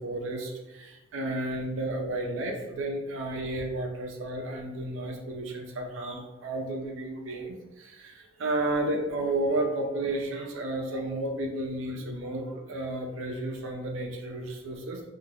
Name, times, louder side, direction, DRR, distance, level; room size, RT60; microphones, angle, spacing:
voice 1, 0.0-15.1, right 2 dB, 75° right, 2 dB, 0.5 m, -32 dB
3.6 x 2.4 x 2.8 m, 1.0 s
head